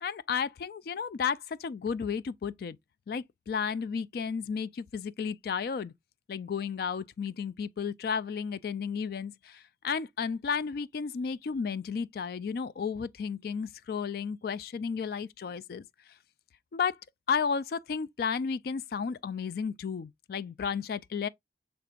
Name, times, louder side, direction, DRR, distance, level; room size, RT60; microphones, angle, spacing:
voice 1, 0.0-2.8 3.1-5.9 6.3-15.8 16.7-16.9 17.3-21.3, left 6 dB, 55° left, 0.3 m, -33 dB
6.7 x 3.4 x 2.3 m
head